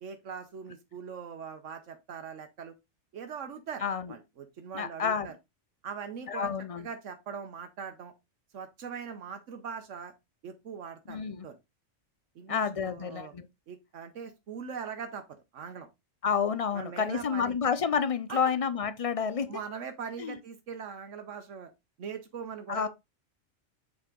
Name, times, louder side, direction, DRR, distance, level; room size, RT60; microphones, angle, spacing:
voice 1, 0.0-2.7 3.1-5.3 5.8-8.1 8.5-10.1 10.4-11.6 12.3-13.3 13.7-15.9 16.7-17.5 18.3-18.4 19.5-21.7 22.0-22.9, right 6 dB, 75° right, 1.2 m, -41 dB
voice 2, 3.8-4.1 4.7-5.3 6.3-6.8 11.1-11.5 12.5-13.5 16.2-19.6 20.2-20.3 22.7-22.9, left 6 dB, 50° left, 0.4 m, -29 dB
7.1 x 4.3 x 3.7 m
omnidirectional pair, 1.3 m